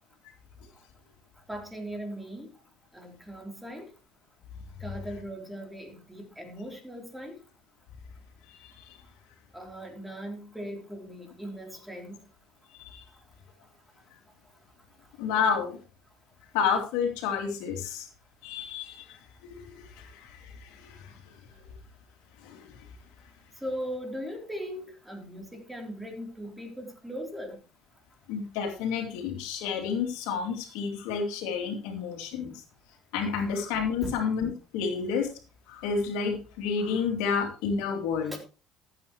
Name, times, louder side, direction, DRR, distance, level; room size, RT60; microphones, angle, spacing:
voice 1, 1.5-2.5 2.9-3.9 4.8-7.4 9.5-12.2 23.6-27.6 33.3-33.4 34.0-34.2 38.2-38.4, equal, 5° right, 3 dB, 3.6 m, -39 dB
voice 2, 8.5-9.0 12.7-13.0 15.2-15.8 16.5-18.1 18.4-21.7 22.4-22.8 28.3-32.6 33.1-35.3 35.7-38.3, left 6 dB, 85° left, 4 dB, 2.5 m, -30 dB
14.5 x 8.2 x 3.1 m, 0.33 s
supercardioid pair, 90°, 0 cm